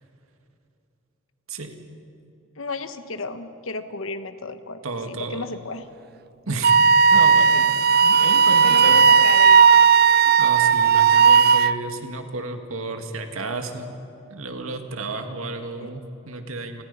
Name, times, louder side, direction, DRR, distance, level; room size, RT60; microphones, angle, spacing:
voice 1, 2.6-4.8 5.1-5.9 7.5-7.7 8.6-9.9 15.8-15.9, left 3 dB, 70° left, 10 dB, 1.2 m, -33 dB
voice 2, 4.8-5.5 6.5-6.8 7.1-7.7 8.0-9.0 10.4-13.9 14.3-16.8, right 2 dB, 85° right, 6 dB, 2.0 m, -32 dB
Wind instrument woodwind instrument, 6.6-11.8, right 6 dB, 45° right, 0.4 m, -15 dB
29.5 x 20.5 x 5.5 m, 2.7 s
head